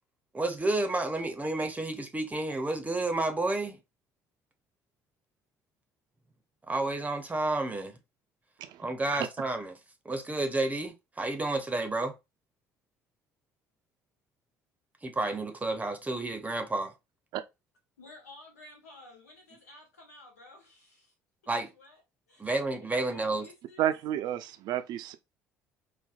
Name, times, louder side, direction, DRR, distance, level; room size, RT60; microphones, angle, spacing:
voice 1, 0.3-3.8 6.7-8.0 8.8-9.7 10.0-12.2 15.0-16.9 21.5-21.7 22.4-23.5, right 2 dB, 20° right, 0.6 m, -30 dB
voice 2, 18.0-21.1 21.8-22.0 22.3-22.4 22.9-23.9, left 2 dB, 90° left, 0.6 m, -53 dB
voice 3, 23.8-25.2, right 12 dB, 60° right, 0.4 m, -31 dB
4.0 x 2.1 x 2.4 m
hypercardioid pair, 60°, 8 cm